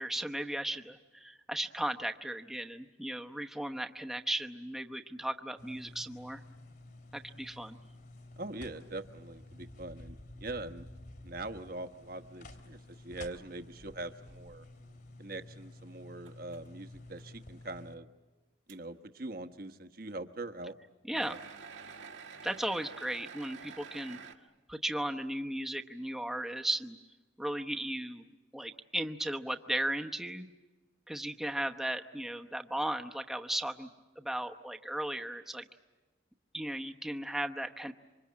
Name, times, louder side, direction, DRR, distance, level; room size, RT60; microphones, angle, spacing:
voice 1, 0.0-6.4 7.1-7.8 21.1-21.4 22.4-24.2 24.7-27.0 27.4-28.2 28.5-30.5 31.1-33.9 34.2-35.7 36.5-37.9, right 1 dB, ahead, 4 dB, 0.9 m, -36 dB
sound 1, 5.6-18.0, left 1 dB, 55° left, 3.3 m, -51 dB
voice 2, 8.4-10.9 11.2-14.6 15.2-18.1 18.7-20.7 21.1-21.4, right 2 dB, 50° right, 8 dB, 1.1 m, -43 dB
sound 2, 16.2-16.7 17.1-17.2 17.9-18.0 18.7-18.8 21.1-24.3, right 6 dB, 80° right, 1.7 m, -48 dB
27.0 x 25.5 x 8.6 m, 1.2 s
head